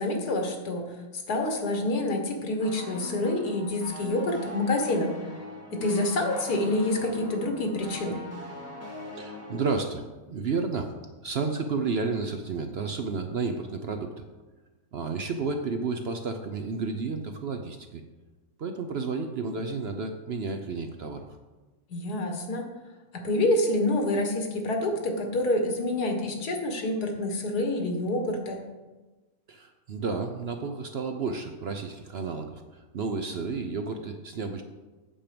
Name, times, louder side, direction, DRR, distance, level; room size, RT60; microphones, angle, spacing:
voice 1, 0.0-5.1 5.7-8.3 21.9-22.7 23.1-28.6, left 1 dB, 90° left, 4 dB, 2.0 m, -27 dB
sound 1, 2.6-9.8, left 2 dB, 10° left, 1.7 m, -41 dB
voice 2, 9.2-10.9 11.2-14.2 14.9-18.0 18.6-21.3 29.5-34.6, right 4 dB, 55° right, 6 dB, 0.7 m, -31 dB
8.9 x 7.3 x 5.1 m, 1.2 s
omnidirectional pair, 1.6 m